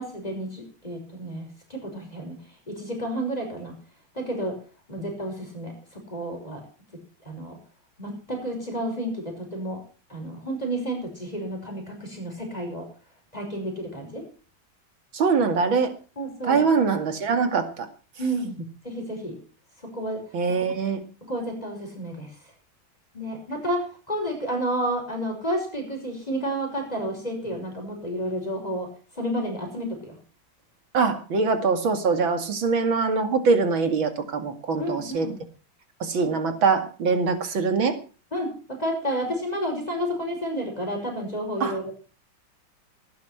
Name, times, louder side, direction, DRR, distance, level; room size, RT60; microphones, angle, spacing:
voice 1, 0.0-2.4 2.7-3.7 4.1-4.6 4.9-6.6 7.3-7.6 8.0-9.8 10.1-12.9 13.3-14.2 16.2-16.6 18.2-18.6 18.8-19.4 19.8-20.2 21.2-22.3 23.1-28.9 29.2-30.2 34.8-35.4 38.3-41.9, right 1 dB, 20° left, 1 dB, 5.7 m, -31 dB
voice 2, 15.1-15.9 16.4-17.9 20.3-21.0 30.9-35.3 36.0-38.0 41.6-41.8, right 4 dB, 75° right, 8 dB, 3.0 m, -23 dB
19.0 x 10.5 x 5.8 m, 0.37 s
omnidirectional pair, 2.2 m